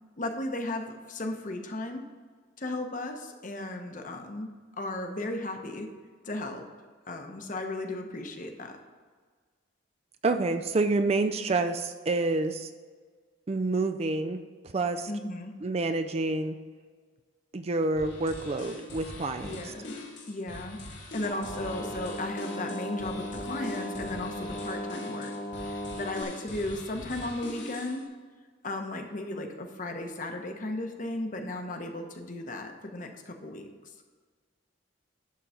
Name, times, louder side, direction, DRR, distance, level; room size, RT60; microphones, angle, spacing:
voice 1, 0.2-2.0 2.6-4.5 4.8-5.9 6.2-6.6 7.1-8.8 15.1-15.5 19.4-20.0 20.3-20.8 21.1-25.3 25.6-28.1 28.6-33.7, left 2 dB, 40° left, 4 dB, 0.9 m, -35 dB
voice 2, 10.2-12.7 13.5-14.4 14.7-15.1 15.6-16.5 17.5-19.6, right 3 dB, 30° right, 8 dB, 0.4 m, -28 dB
sound 1, 18.0-28.0, left 2 dB, 65° left, 1.7 m, -43 dB
sound 2, 21.2-26.2, left 1 dB, 15° left, 0.7 m, -37 dB
11.5 x 3.9 x 5.7 m, 1.5 s
head